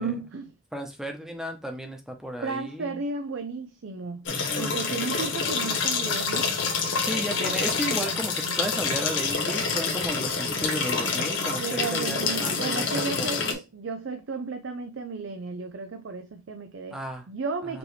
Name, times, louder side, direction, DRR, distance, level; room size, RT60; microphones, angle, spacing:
voice 1, 0.0-0.5 2.4-4.3 4.6-6.5 11.6-17.0 17.3-17.8, right 4 dB, 80° right, 0.5 m, -33 dB
voice 2, 0.7-3.0 4.3-5.3 7.0-13.5 16.9-17.2 17.7-17.8, equal, 5° right, 0.8 m, -34 dB
sound 1, 4.3-13.5, left 4 dB, 70° left, 1.1 m, -27 dB
5.1 x 3.1 x 3.2 m
head